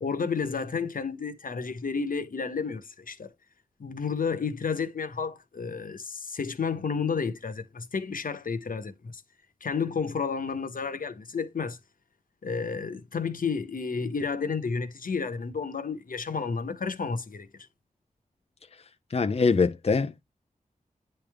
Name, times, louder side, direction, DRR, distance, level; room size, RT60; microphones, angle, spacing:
voice 1, 0.0-3.3 3.8-9.2 9.6-11.8 12.4-17.5, left 5 dB, 70° left, 1.2 m, -31 dB
voice 2, 19.1-20.2, left 4 dB, 45° left, 0.5 m, -23 dB
9.9 x 3.4 x 3.5 m
cardioid pair, 60°, 15 cm